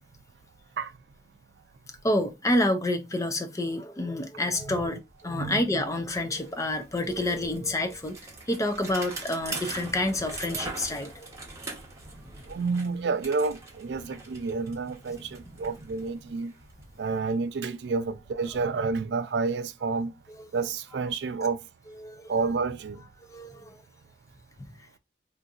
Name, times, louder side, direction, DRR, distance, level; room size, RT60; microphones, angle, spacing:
voice 1, 2.0-8.2 8.5-11.3 20.4-20.5 22.0-22.3 23.2-23.8 24.6-24.7, left 1 dB, 20° left, 0.4 m, -28 dB
Bicycle, 5.1-18.0, right 3 dB, 15° right, 0.9 m, -43 dB
voice 2, 12.5-16.5 17.0-20.1 20.5-21.6 22.3-23.0, right 4 dB, 70° right, 0.4 m, -29 dB
3.7 x 2.6 x 2.3 m
head